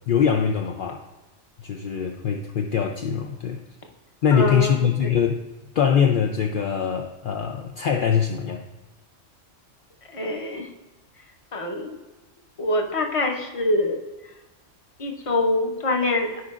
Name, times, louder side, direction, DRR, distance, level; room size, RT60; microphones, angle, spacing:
voice 1, 0.1-1.0 1.6-3.6 4.2-5.4 5.7-8.7, left 7 dB, 60° left, 3 dB, 0.5 m, -23 dB
voice 2, 4.3-4.8 5.0-5.1 10.1-10.7 11.5-12.0 12.6-14.0 15.0-16.4, left 2 dB, 30° left, 2 dB, 0.8 m, -24 dB
14.0 x 5.0 x 2.4 m, 1.1 s
omnidirectional pair, 1.3 m